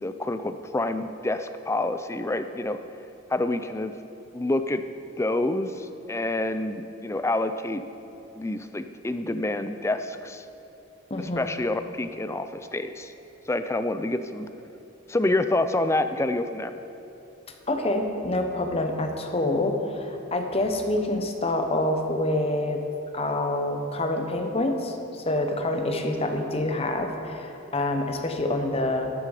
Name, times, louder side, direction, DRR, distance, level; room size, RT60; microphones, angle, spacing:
voice 1, 0.0-2.8 3.3-3.9 4.3-4.8 5.2-7.8 8.4-10.4 11.2-13.1 13.5-14.5 15.1-16.7, left 2 dB, 15° left, 9 dB, 0.4 m, -27 dB
voice 2, 11.1-11.4 17.7-22.8 23.1-29.1, left 1 dB, 30° left, 4 dB, 0.9 m, -27 dB
12.5 x 10.0 x 4.9 m, 2.9 s
head